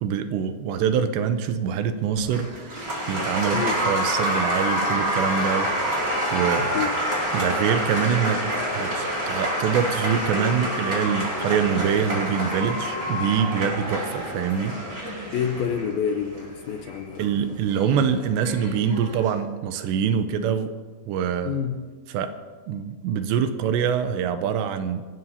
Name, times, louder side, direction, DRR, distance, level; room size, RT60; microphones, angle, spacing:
voice 1, 0.0-6.7 7.3-8.4 8.7-14.7 15.1-15.3 17.2-20.7 21.1-21.6 22.1-22.3 22.7-25.1, right 7 dB, 85° right, 9 dB, 2.9 m, -25 dB
Applause, 2.2-19.3, equal, 25° right, 4.6 m, -27 dB
voice 2, 3.5-3.8 6.7-6.9 15.3-17.5 21.5-21.8, left 7 dB, 80° left, 6 dB, 2.2 m, -28 dB
25.0 x 16.5 x 2.8 m, 1.4 s
omnidirectional pair, 5.1 m